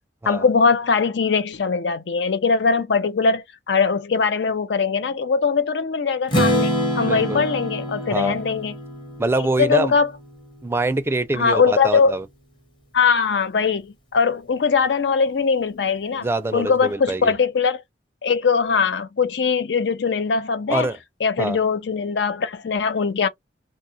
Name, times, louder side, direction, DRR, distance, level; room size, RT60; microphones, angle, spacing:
voice 1, 0.3-8.7 9.6-10.1 11.3-12.2 12.9-16.3 16.5-17.8 18.2-20.9 21.2-23.3, left 5 dB, 80° left, 0.5 m, -21 dB
Strum, 6.3-10.2, equal, 30° left, 0.9 m, -25 dB
voice 2, 7.0-7.4 8.1-8.4 9.2-9.9 10.6-12.2 16.2-17.3 20.7-21.0 21.4-21.6, right 2 dB, 15° right, 0.4 m, -24 dB
2.8 x 2.3 x 2.6 m
head